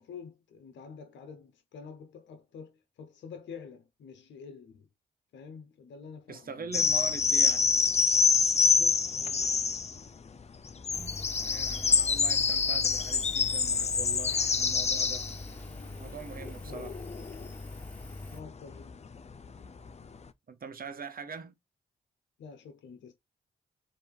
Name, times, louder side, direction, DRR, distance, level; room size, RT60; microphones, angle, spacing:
voice 1, 0.0-4.9 5.3-6.7 8.5-9.7 16.6-16.9 18.3-19.0 22.4-23.1, left 6 dB, 80° left, 0.8 m, -48 dB
voice 2, 6.3-7.7 10.9-15.2 16.0-17.0 20.5-21.5, right 5 dB, 50° right, 1.0 m, -43 dB
sound 1, 6.7-10.1 10.7-18.5 18.7-20.1, left 5 dB, 35° left, 0.5 m, -26 dB
Engine, 10.9-18.4, left 2 dB, 5° left, 1.5 m, -44 dB
3.4 x 2.8 x 4.6 m
supercardioid pair, 45°, 19 cm